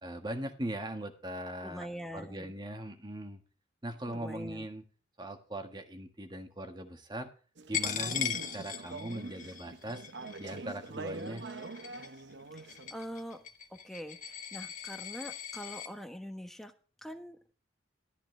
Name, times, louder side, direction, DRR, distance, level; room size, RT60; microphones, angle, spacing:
voice 1, 0.0-1.9 2.1-3.4 3.8-4.8 5.2-7.3 7.7-10.0 10.4-11.4, right 1 dB, 25° right, 6 dB, 1.6 m, -40 dB
voice 2, 1.6-2.5 4.1-4.7 12.5-13.4 13.7-16.7 17.0-17.4, equal, ahead, 6 dB, 1.1 m, -44 dB
Conversation / Chatter, 7.6-12.9, right 3 dB, 80° right, 0.9 m, -44 dB
Coin (dropping), 7.7-15.9, left 9 dB, 45° left, 1.3 m, -39 dB
13.5 x 10.5 x 3.3 m, 0.38 s
head